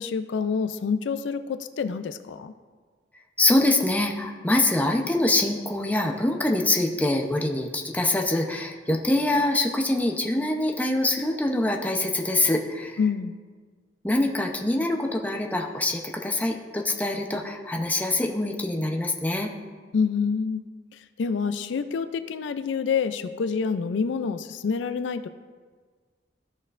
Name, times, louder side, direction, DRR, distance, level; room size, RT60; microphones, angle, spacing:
voice 1, 0.0-2.5 13.0-13.4 19.9-20.6 21.2-25.3, left 5 dB, 80° left, 11 dB, 0.4 m, -27 dB
voice 2, 3.4-13.0 14.0-19.5, left 1 dB, 10° left, 2 dB, 0.7 m, -24 dB
14.0 x 6.2 x 2.5 m, 1.5 s
head